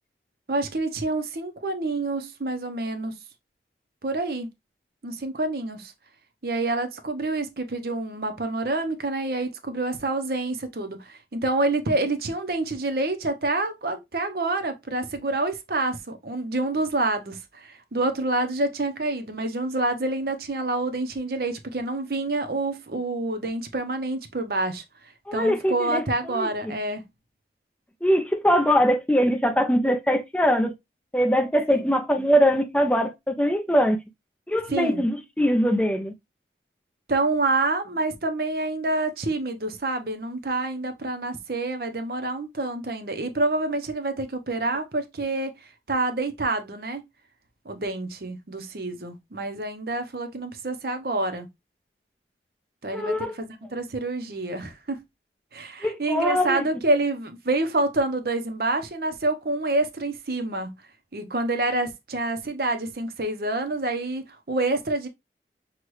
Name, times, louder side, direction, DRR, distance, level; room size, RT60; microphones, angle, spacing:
voice 1, 0.5-3.2 4.0-4.5 5.0-5.9 6.4-24.8 25.3-27.0 31.7-31.9 34.7-35.0 37.1-45.5 45.9-47.0 47.6-51.5 52.8-55.0 55.5-60.7 61.1-65.1, right 2 dB, 55° right, 0.7 m, -27 dB
voice 2, 25.3-26.0 26.3-26.8 28.0-30.7 31.1-34.0 34.5-36.1 52.9-53.3 55.8-56.6, equal, 5° left, 0.6 m, -22 dB
6.1 x 2.3 x 3.1 m
head